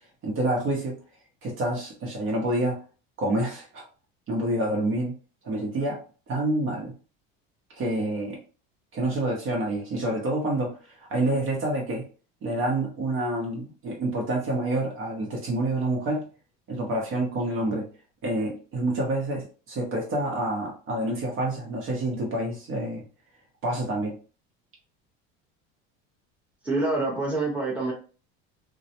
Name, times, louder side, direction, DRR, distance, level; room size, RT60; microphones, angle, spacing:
voice 1, 0.2-1.0 1.4-2.8 3.2-3.8 4.3-5.2 5.4-6.0 6.3-6.9 7.8-8.4 8.9-10.7 11.0-12.1 12.4-16.3 16.7-17.9 18.2-23.0 23.6-24.2, right 1 dB, 40° right, 0 dB, 0.9 m, -27 dB
voice 2, 26.6-27.9, right 2 dB, 5° right, -4 dB, 1.0 m, -26 dB
2.3 x 2.1 x 2.8 m, 0.36 s
supercardioid pair, 125°, 30 cm